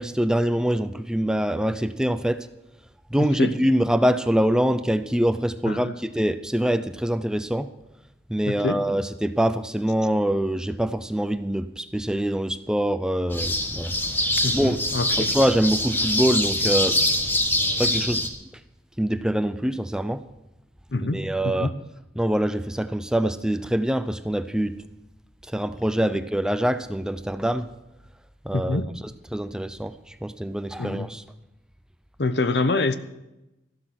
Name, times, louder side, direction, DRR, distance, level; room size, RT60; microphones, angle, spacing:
voice 1, 0.0-2.5 3.1-7.7 8.3-13.9 14.5-14.9 15.2-17.0 17.8-18.2 19.0-20.2 21.0-21.7 22.2-24.8 25.5-27.7 28.4-28.8 29.3-31.2, equal, 5° right, 0.5 m, -24 dB
voice 2, 3.2-3.5 5.6-5.9 8.5-8.8 14.4-15.3 20.9-21.8 28.5-28.9 30.8-31.1 32.2-33.0, left 2 dB, 75° left, 0.9 m, -26 dB
sound 1, 13.3-18.3, left 1 dB, 10° left, 1.4 m, -24 dB
14.0 x 12.5 x 5.8 m
head